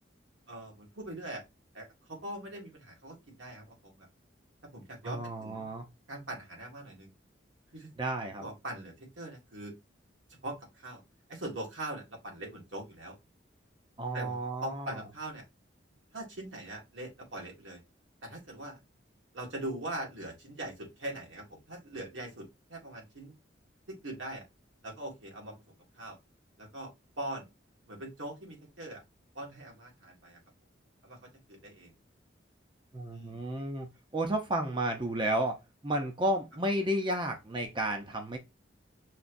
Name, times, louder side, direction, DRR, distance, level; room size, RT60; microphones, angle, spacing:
voice 1, 0.5-1.4 1.7-4.1 4.7-5.7 6.1-7.1 7.7-7.9 8.4-9.7 10.4-11.0 11.3-13.2 14.1-15.4 16.1-17.8 18.2-18.8 19.3-23.3 23.9-24.5 24.8-25.5 25.9-26.2 26.6-27.5 27.9-29.0 29.3-30.4 31.0-31.9 33.1-33.4, right 1 dB, 90° right, 1.9 m, -42 dB
voice 2, 5.0-5.8 8.0-8.4 14.0-15.0 32.9-33.9 34.1-38.4, right 1 dB, 25° right, 0.7 m, -32 dB
5.8 x 3.0 x 2.6 m
head